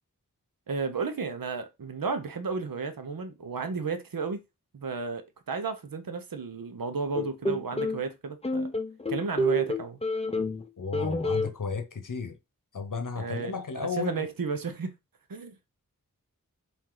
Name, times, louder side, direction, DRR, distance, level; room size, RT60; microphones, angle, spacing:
voice 1, 0.7-4.4 4.7-8.7 9.1-10.0 13.2-13.5 13.8-14.9 15.3-15.5, right 4 dB, 75° right, 0.8 m, -33 dB
sound 1, 7.2-8.0 8.4-10.6 10.9-11.5, left 1 dB, 20° left, 0.6 m, -28 dB
voice 2, 10.8-12.4 12.7-14.3, left 5 dB, 60° left, 0.8 m, -33 dB
4.3 x 2.7 x 3.8 m
wide cardioid pair, 40°, 35 cm